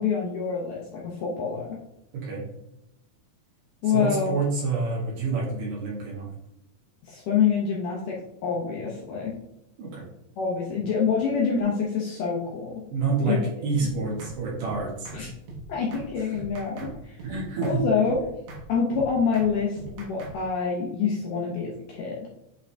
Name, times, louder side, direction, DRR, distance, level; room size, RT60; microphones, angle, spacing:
voice 1, 0.0-1.8 3.8-4.3 7.1-9.4 10.4-12.8 13.3-13.4 13.8-13.9 15.1-15.3 15.7-16.9 17.6-18.2 18.7-22.2, left 6 dB, 70° left, -3 dB, 2.1 m, -26 dB
voice 2, 2.1-2.4 3.9-6.3 9.8-10.0 12.9-15.1 17.2-17.8, right 4 dB, 60° right, -5 dB, 3.0 m, -28 dB
sound 1, 13.8-13.9 14.2-14.3 14.6-14.8 15.0-15.2 15.5-15.6 15.9-16.1 16.3-16.9 17.2-17.3 17.6-17.8 18.0-18.2 18.5-18.6 18.9-19.0 19.3-19.5 19.8-20.3, right 3 dB, 85° right, 3.6 m, -40 dB
8.5 x 3.9 x 3.3 m, 0.87 s
omnidirectional pair, 4.6 m